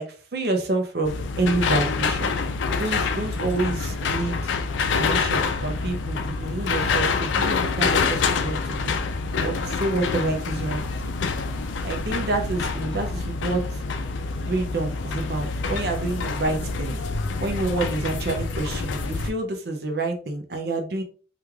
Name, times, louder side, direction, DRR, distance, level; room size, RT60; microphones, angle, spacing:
voice 1, 0.0-2.3 2.8-4.5 4.9-9.0 9.4-11.1 11.8-13.8 14.4-17.0 17.4-21.0, right 2 dB, 55° right, 4 dB, 0.5 m, -28 dB
sound 1, 1.0-19.3, left 4 dB, 85° left, 0.4 m, -26 dB
3.1 x 2.4 x 3.4 m, 0.39 s
head